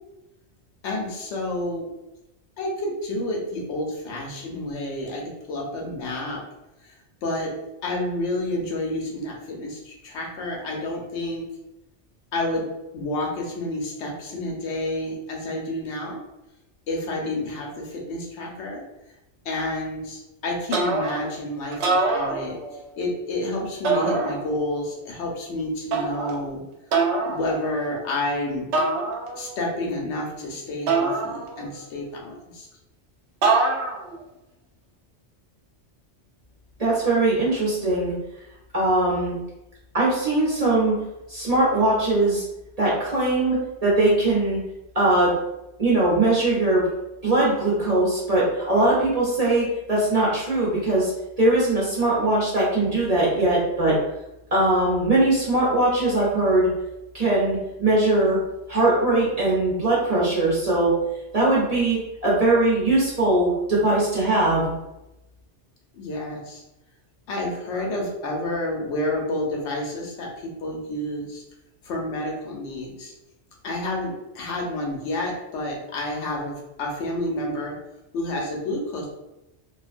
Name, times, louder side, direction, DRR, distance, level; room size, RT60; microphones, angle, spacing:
voice 1, 0.8-1.9 2.6-6.4 6.8-6.9 7.2-7.5 7.8-11.4 12.3-16.2 16.9-18.8 19.4-22.6 23.0-26.6 27.2-28.7 29.3-32.7 65.9-66.6 67.3-71.4 71.8-73.1 73.6-77.8 78.1-79.1, left 1 dB, 85° left, -1 dB, 0.9 m, -29 dB
sound 1, 20.7-21.3 21.7-22.9 23.8-24.7 25.9-26.4 26.9-27.4 28.7-29.6 30.9-31.8 33.4-34.2, right 3 dB, 75° right, 0.8 m, -24 dB
voice 2, 36.8-38.1 38.7-39.4 39.9-41.0 41.3-42.4 42.8-44.6 44.9-45.3 45.8-46.9 47.2-51.1 51.4-54.0 54.5-56.7 57.1-58.4 58.7-61.0 61.3-64.7, right 2 dB, 40° right, -6 dB, 0.6 m, -21 dB
2.4 x 2.2 x 2.4 m, 0.93 s
omnidirectional pair, 1.2 m